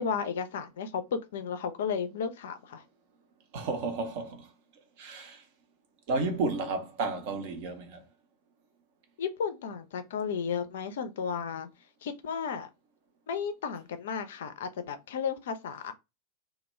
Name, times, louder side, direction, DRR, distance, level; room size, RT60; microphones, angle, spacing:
voice 1, 0.0-2.8 9.2-11.7 12.0-12.7 13.3-15.9, left 6 dB, 60° left, 0.4 m, -33 dB
voice 2, 3.5-4.5 5.0-5.4 6.1-8.0, right 3 dB, 50° right, 0.6 m, -32 dB
2.2 x 2.1 x 3.0 m
figure-of-eight pair, 90°, 0 cm